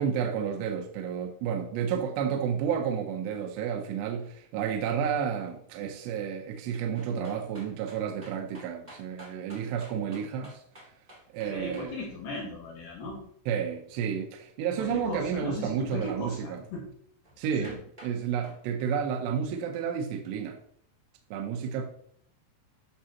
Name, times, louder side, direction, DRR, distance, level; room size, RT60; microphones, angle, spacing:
voice 1, 0.0-10.6 11.3-12.0 13.5-16.6 17.4-20.6 21.3-21.9, right 7 dB, 75° right, 3 dB, 2.7 m, -31 dB
sound 1, 6.9-11.9 17.2-17.3 17.6-18.1 18.4-18.6, right 1 dB, 40° right, 0.5 m, -50 dB
voice 2, 11.5-13.2 14.8-16.8 17.6-17.8, left 2 dB, 60° left, -3 dB, 3.1 m, -37 dB
11.5 x 6.1 x 2.9 m, 0.63 s
omnidirectional pair, 5.4 m